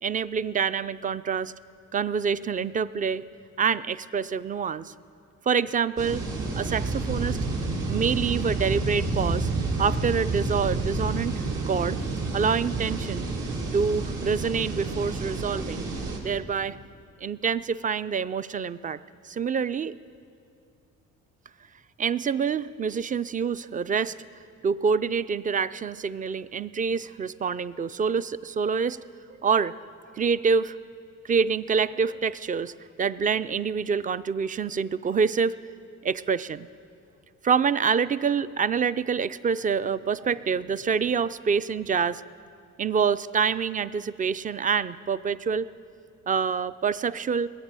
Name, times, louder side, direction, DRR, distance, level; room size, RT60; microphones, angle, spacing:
voice 1, 0.0-1.5 1.9-3.2 3.6-4.9 5.5-6.2 6.5-7.4 7.9-9.5 9.8-11.3 11.7-12.0 12.3-13.3 13.7-15.9 16.2-16.8 17.2-19.0 19.2-19.9 22.0-24.1 24.6-29.0 29.4-29.7 30.2-30.8 31.2-32.7 33.0-35.6 36.0-36.7 37.4-42.2 42.8-45.7 46.3-47.5, right 6 dB, 25° right, 16 dB, 0.4 m, -26 dB
sound 1, 6.0-16.2, right 3 dB, 75° right, 2.7 m, -29 dB
21.0 x 8.8 x 7.5 m, 2.4 s
cardioid pair, 90°, 30 cm